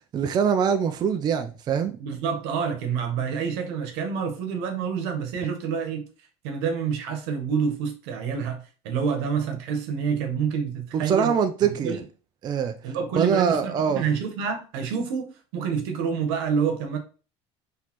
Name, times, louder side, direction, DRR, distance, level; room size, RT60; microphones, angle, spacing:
voice 1, 0.1-2.0 10.9-12.0 12.4-12.7 13.1-14.1, right 7 dB, 35° right, 0.4 m, -23 dB
voice 2, 2.0-6.0 6.4-8.6 8.8-11.3 11.6-12.0 12.8-17.0, right 6 dB, 85° right, 1.0 m, -28 dB
4.1 x 3.2 x 3.0 m
cardioid pair, 125°, 13 cm